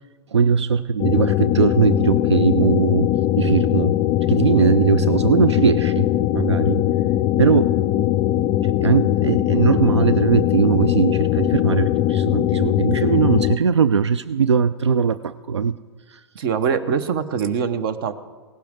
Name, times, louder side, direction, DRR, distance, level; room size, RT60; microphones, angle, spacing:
voice 1, 0.3-3.1 3.4-3.9 4.3-6.1 6.3-6.8 7.4-7.7 8.6-15.7 16.1-16.2, right 7 dB, 90° right, 14 dB, 0.4 m, -20 dB
sound 1, 1.0-13.6, left 13 dB, 30° left, 0.4 m, -20 dB
voice 2, 16.3-18.1, right 6 dB, 55° right, 13 dB, 1.0 m, -23 dB
17.5 x 12.0 x 3.6 m, 1.4 s
hypercardioid pair, 115°, 14 cm